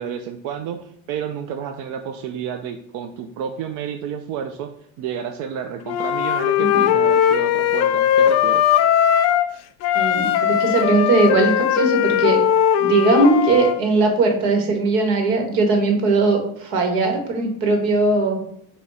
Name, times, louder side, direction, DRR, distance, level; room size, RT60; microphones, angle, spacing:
voice 1, 0.0-4.7 5.0-8.7, right 8 dB, 60° right, 6 dB, 0.6 m, -30 dB
Wind instrument woodwind instrument, 5.9-9.5 9.8-13.8, left 10 dB, 50° left, 0.5 m, -18 dB
voice 2, 9.9-12.4 12.8-18.4, right 3 dB, 80° right, 3 dB, 1.9 m, -19 dB
8.2 x 3.0 x 4.2 m, 0.71 s
cardioid pair, 140°, 35 cm